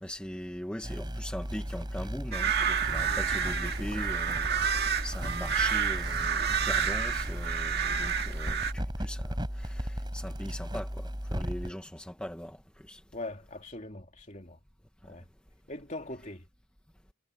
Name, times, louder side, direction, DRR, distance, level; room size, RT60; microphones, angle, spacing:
voice 1, 0.0-4.7 5.0-12.6 12.9-13.0, equal, 5° left, 1.4 m, -40 dB
sound 1, 0.8-11.7, equal, 20° right, 8.0 m, -36 dB
sound 2, 2.3-8.7, right 7 dB, 50° right, 2.0 m, -29 dB
voice 2, 13.1-14.6 15.1-15.2 15.7-16.5, left 2 dB, 35° left, 3.1 m, -42 dB
head